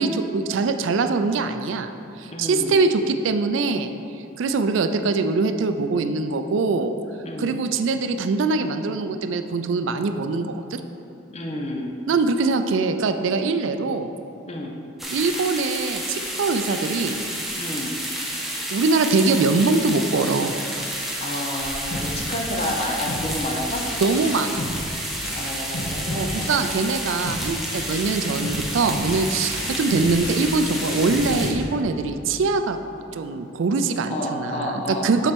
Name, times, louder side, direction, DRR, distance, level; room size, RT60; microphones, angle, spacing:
voice 1, 0.0-1.9 2.2-3.9 4.4-6.9 7.4-10.8 12.1-14.1 15.1-17.2 18.7-20.5 24.0-24.6 26.1-32.8 33.1-35.3, right 3 dB, 65° right, 8 dB, 0.4 m, -23 dB
voice 2, 2.2-2.8 7.2-7.6 11.3-12.0 14.4-14.8 17.5-17.9 21.2-23.9 25.3-26.7 34.1-35.2, left 1 dB, 30° left, 1 dB, 0.7 m, -30 dB
sound 1, 15.0-31.5, right 1 dB, ahead, 0.7 m, -30 dB
sound 2, 21.9-26.9 27.2-32.3, left 1 dB, 80° left, 1.0 m, -33 dB
7.4 x 4.2 x 5.2 m, 2.7 s
head